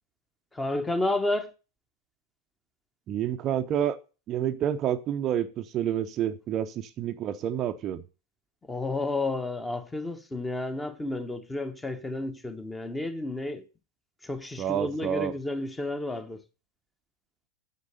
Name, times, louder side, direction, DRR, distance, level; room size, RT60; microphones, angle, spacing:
voice 1, 0.5-1.5 8.7-13.7 14.2-16.4, left 2 dB, 10° left, 1.1 m, -31 dB
voice 2, 3.1-4.0 4.3-8.0 14.6-15.3, right 10 dB, 30° right, 0.7 m, -29 dB
9.7 x 7.4 x 6.5 m
figure-of-eight pair, 90°, 0 cm